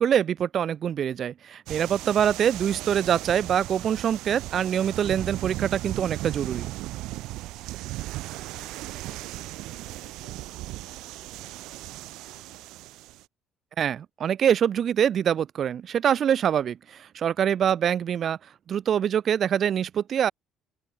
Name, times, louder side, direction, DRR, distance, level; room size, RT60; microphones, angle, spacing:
voice 1, 0.0-6.7 13.8-18.4 18.7-20.3, right 9 dB, 35° right, 0.3 m, -24 dB
sound 1, 1.7-13.2, right 18 dB, 80° right, 0.6 m, -37 dB
voice 2, 7.3-7.8 8.5-12.7, left 19 dB, 90° left, 7.4 m, -60 dB
cardioid pair, 170°, 0 cm